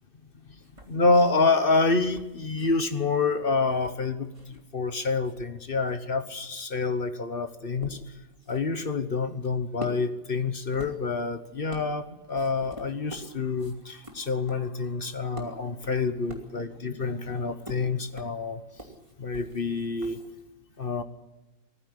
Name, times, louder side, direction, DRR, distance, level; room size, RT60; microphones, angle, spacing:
sound 1, 0.6-4.9 5.1-20.5, right 1 dB, 20° right, 2.7 m, -48 dB
voice 1, 0.9-8.0 8.5-18.6 19.2-20.2 20.8-21.0, left 3 dB, 40° left, 10 dB, 1.0 m, -27 dB
19.5 x 14.5 x 9.8 m, 1.0 s
omnidirectional pair, 1.8 m